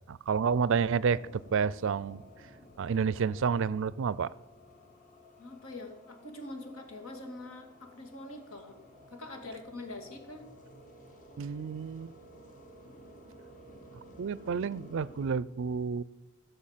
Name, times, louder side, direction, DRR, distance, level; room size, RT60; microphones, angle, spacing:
voice 1, 0.1-2.2 2.8-4.3 11.4-12.1 14.2-16.0, right 6 dB, 60° right, 19 dB, 0.4 m, -30 dB
sound 1, 0.7-15.4, equal, 40° left, 1.9 m, -54 dB
voice 2, 5.4-8.8 9.1-10.4, left 2 dB, 75° left, 3 dB, 2.5 m, -44 dB
15.5 x 7.0 x 7.4 m, 1.1 s
head